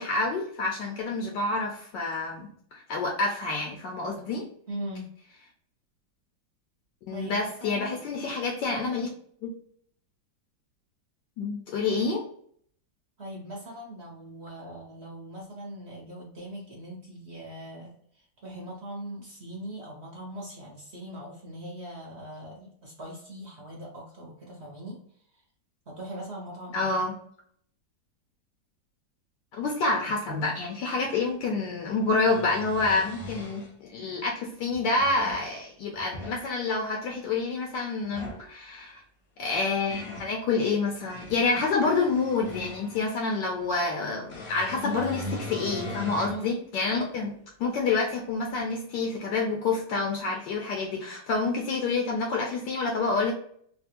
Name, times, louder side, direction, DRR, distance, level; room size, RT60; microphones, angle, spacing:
voice 1, 0.0-4.5 7.1-9.1 9.4-9.5 11.4-12.2 26.7-27.2 29.5-39.0 39.4-47.3 47.6-53.3, left 3 dB, 75° left, 1 dB, 1.1 m, -28 dB
voice 2, 4.7-5.1 7.1-8.0 13.2-25.0 25.3-25.4 25.9-26.9 46.2-46.5, right 1 dB, 45° right, -3 dB, 0.9 m, -41 dB
sound 1, 31.1-31.2 32.0-33.7 34.7-35.5 35.9-36.4 38.0-38.5 39.4-40.3 40.9-43.1 44.3-46.4 46.9-47.0 48.6-48.7, left 1 dB, 45° left, 0.9 m, -39 dB
3.2 x 2.3 x 2.9 m, 0.62 s
omnidirectional pair, 2.1 m